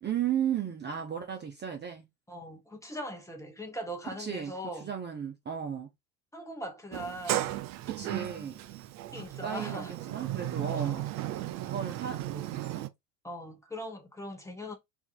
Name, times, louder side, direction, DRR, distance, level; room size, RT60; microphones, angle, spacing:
voice 1, 0.0-2.1 4.2-4.5 4.8-5.9 7.8-8.6 9.2-11.0 11.6-12.8, right 9 dB, 20° right, 0.8 m, -35 dB
voice 2, 2.3-4.9 6.3-7.6 9.1-9.9 10.6-11.1 13.2-14.8, equal, 5° left, 1.0 m, -40 dB
Sliding door, 6.9-12.9, right 14 dB, 40° right, 0.5 m, -35 dB
3.5 x 2.7 x 4.5 m
hypercardioid pair, 95°, 48 cm